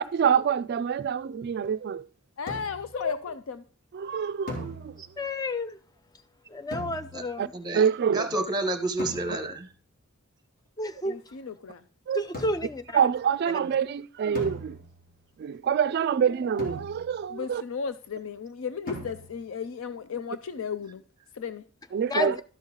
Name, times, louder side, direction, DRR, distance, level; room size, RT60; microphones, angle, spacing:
voice 1, 0.0-2.1 3.9-4.9 7.4-7.5 7.7-8.3 12.1-12.2 12.9-14.8 15.4-17.6 21.9-22.4, right 7 dB, 50° right, 0.3 m, -26 dB
voice 2, 2.4-3.6 11.0-11.8 17.3-21.0 21.4-21.6, left 6 dB, 75° left, 0.5 m, -34 dB
sound 1, 2.5-3.0 4.5-5.3 6.7-7.5 9.0-9.7 12.3-12.9 14.4-15.2 16.6-17.4 18.9-19.6, left 1 dB, 45° left, 2.3 m, -39 dB
voice 3, 5.2-5.8 6.5-7.5 10.8-11.2 12.1-13.0 22.0-22.4, left 1 dB, 20° left, 0.5 m, -31 dB
voice 4, 7.5-7.8 8.1-9.7, right 2 dB, 20° right, 1.0 m, -29 dB
12.0 x 5.6 x 3.7 m
head